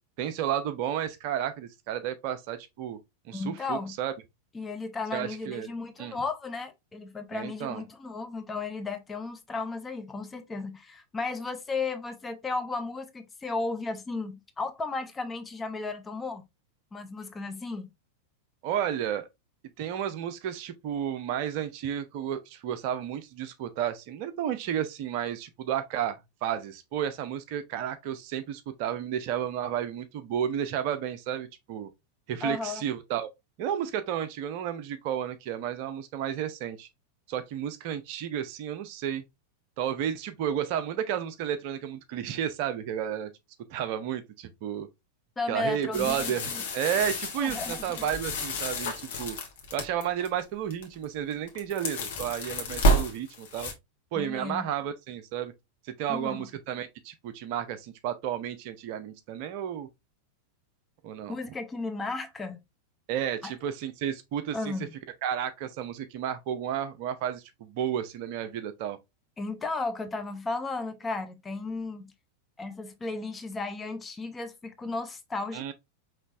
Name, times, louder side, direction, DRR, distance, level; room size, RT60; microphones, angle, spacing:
voice 1, 0.2-3.0 3.3-4.1 5.1-5.7 6.0-6.1 7.3-7.8 18.6-19.3 19.8-31.9 32.3-33.3 33.6-36.9 37.3-39.2 39.8-43.3 43.7-44.9 45.5-49.4 49.7-53.7 54.1-55.5 55.8-59.9 61.0-61.4 63.1-64.7 65.2-69.0 75.5-75.7, right 9 dB, 45° right, 0.6 m, -32 dB
voice 2, 3.3-3.9 4.5-16.4 16.9-17.9 32.4-32.8 45.4-46.6 47.4-48.0 54.2-54.7 56.1-56.5 61.3-62.6 63.4-63.5 64.5-64.9 69.4-72.1 72.6-75.7, left 3 dB, 15° left, 0.6 m, -34 dB
sound 1, 45.9-50.3 50.7-51.0 51.3-53.7, right 1 dB, 55° left, 1.2 m, -30 dB
5.3 x 3.0 x 2.5 m
figure-of-eight pair, 90°, 0 cm